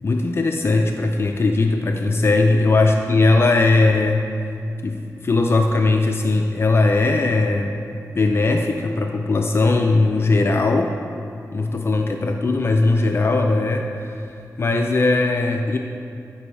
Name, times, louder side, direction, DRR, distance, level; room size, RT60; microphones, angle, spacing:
voice 1, 0.0-4.6 4.8-7.8 8.2-11.0 11.5-15.8, left 3 dB, 40° left, 3 dB, 0.4 m, -19 dB
13.5 x 5.4 x 3.3 m, 2.5 s
wide cardioid pair, 120°, 6 cm